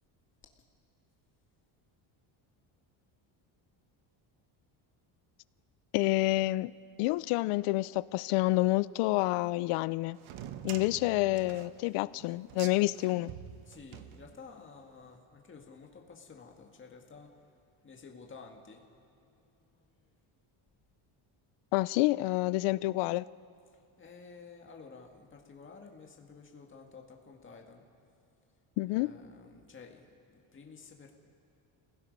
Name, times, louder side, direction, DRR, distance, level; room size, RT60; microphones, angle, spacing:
voice 1, 5.9-6.7 7.0-10.2 10.6-13.3 21.7-23.3 28.8-29.1, left 19 dB, 85° left, 20 dB, 0.6 m, -28 dB
sound 1, 10.2-14.7, right 10 dB, 70° right, 1.1 m, -46 dB
voice 2, 13.7-20.1 24.0-27.9 28.9-30.1 30.5-31.1, left 5 dB, 25° left, 2 dB, 1.8 m, -52 dB
29.5 x 17.0 x 5.3 m, 2.4 s
cardioid pair, 140°, 50 cm